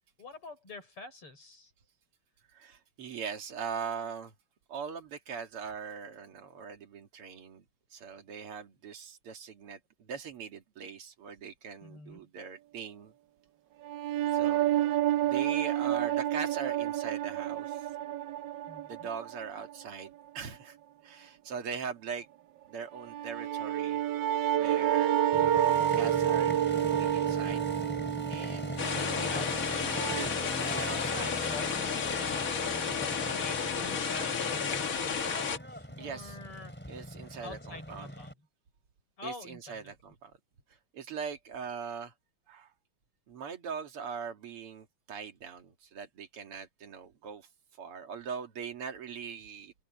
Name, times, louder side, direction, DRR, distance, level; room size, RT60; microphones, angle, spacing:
voice 1, 0.2-1.7 11.8-12.3 18.7-19.1 28.8-36.7 37.4-38.3 39.2-39.9, left 3 dB, 90° left, 6.8 m, -46 dB
voice 2, 2.5-4.3 4.7-7.6 7.9-13.1 14.3-14.7 15.2-17.9 18.9-20.8 21.0-22.3 22.7-24.0 24.5-25.1 25.9-27.6 28.3-29.0 30.6-31.3 36.0-36.4 36.9-38.1 39.2-40.3 40.9-42.1 42.5-42.7 43.3-47.5 47.8-49.7, right 6 dB, 90° right, 2.9 m, -41 dB
sound 1, 13.9-19.7 23.0-30.3, right 11 dB, 70° right, 1.2 m, -29 dB
Motorcycle, 25.3-38.3, equal, 5° left, 3.3 m, -40 dB
sound 2, 28.8-35.6, left 6 dB, 45° left, 1.6 m, -32 dB
open air
omnidirectional pair, 2.4 m